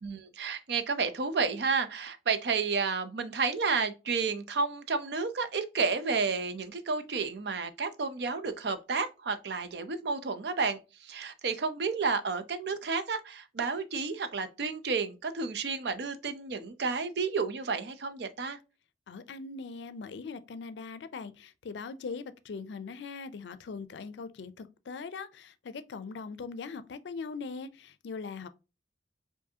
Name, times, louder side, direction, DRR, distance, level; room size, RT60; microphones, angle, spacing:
voice 1, 0.0-18.6, right 4 dB, 65° right, 0.5 m, -31 dB
voice 2, 19.1-28.5, left 4 dB, 80° left, 0.4 m, -41 dB
4.7 x 2.6 x 2.7 m
head